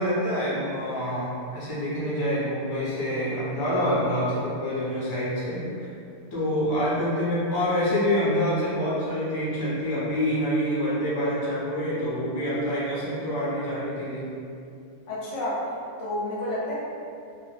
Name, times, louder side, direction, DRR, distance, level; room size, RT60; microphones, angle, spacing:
voice 1, 0.0-5.6 6.3-14.3, equal, 30° left, -9 dB, 0.4 m, -26 dB
voice 2, 15.1-15.7 16.0-16.7, left 1 dB, 65° left, -7 dB, 0.8 m, -30 dB
2.3 x 2.1 x 3.1 m, 2.5 s
omnidirectional pair, 1.5 m